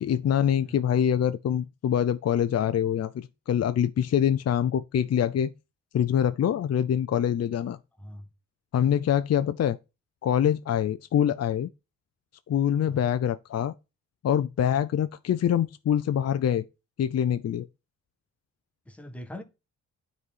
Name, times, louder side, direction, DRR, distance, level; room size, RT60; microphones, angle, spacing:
voice 1, 0.0-5.5 5.9-7.8 8.7-9.8 10.2-11.7 12.5-13.7 14.2-16.6 17.0-17.7, left 9 dB, 50° left, 0.6 m, -25 dB
voice 2, 18.9-19.4, left 1 dB, 5° left, 1.6 m, -42 dB
9.5 x 4.2 x 7.3 m
cardioid pair, 85°, 33 cm